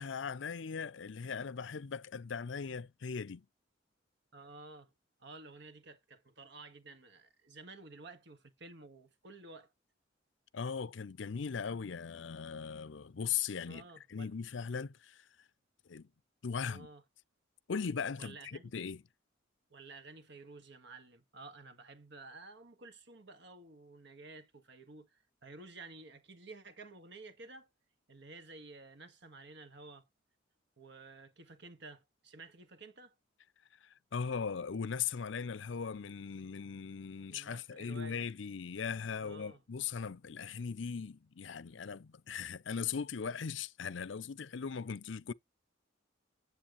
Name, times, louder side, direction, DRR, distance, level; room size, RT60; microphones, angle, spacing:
voice 1, 0.0-3.4 10.5-13.8 14.1-15.3 15.9-16.1 16.4-16.9 17.7-19.0 33.8-45.3, left 6 dB, 65° left, 0.5 m, -39 dB
voice 2, 4.3-4.9 5.2-9.7 11.4-11.5 13.7-14.3 16.6-17.0 18.2-18.7 19.7-27.7 28.1-30.1 30.8-33.1 37.3-38.3 39.2-39.6, right 3 dB, 60° right, 1.6 m, -52 dB
10.0 x 8.0 x 3.1 m
head